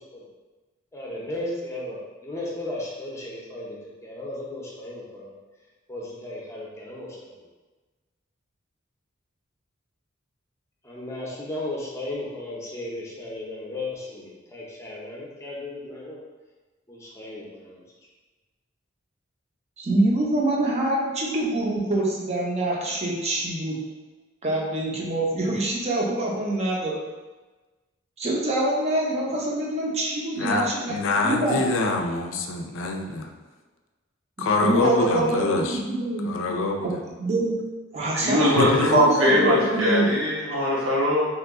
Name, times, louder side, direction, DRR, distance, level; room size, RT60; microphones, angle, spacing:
voice 1, 0.9-3.8 4.0-5.3 5.9-7.4 10.8-16.2 16.9-17.8, left 1 dB, 15° left, -5 dB, 0.6 m, -35 dB
voice 2, 19.8-23.9 24.4-27.0 28.2-30.9 31.2-31.7 34.6-36.3 36.8-37.6 37.9-40.1, right 2 dB, 35° right, -2 dB, 0.6 m, -25 dB
voice 3, 30.9-33.3 34.4-35.8 36.3-36.9 38.5-39.0, left 3 dB, 70° left, 3 dB, 0.4 m, -25 dB
voice 4, 38.1-41.3, equal, 85° right, -5 dB, 1.0 m, -21 dB
2.9 x 2.3 x 3.5 m, 1.2 s
head